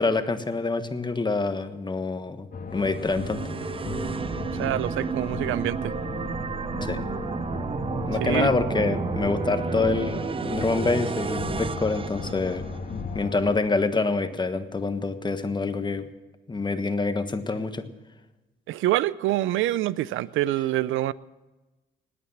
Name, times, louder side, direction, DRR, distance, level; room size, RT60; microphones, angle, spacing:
voice 1, 0.0-2.5 2.7-3.4 6.8-7.0 8.1-12.7 13.1-16.1 16.5-17.9, left 3 dB, 20° left, 10 dB, 1.3 m, -26 dB
sound 1, 2.5-13.6, left 4 dB, 45° left, 1.6 m, -35 dB
sound 2, 2.8-13.0, right 5 dB, 25° right, 0.5 m, -32 dB
voice 2, 4.4-5.9 8.2-8.5 18.7-21.1, right 14 dB, 85° right, 20 dB, 0.5 m, -26 dB
19.5 x 8.7 x 7.3 m, 1.1 s
cardioid pair, 90°, 20 cm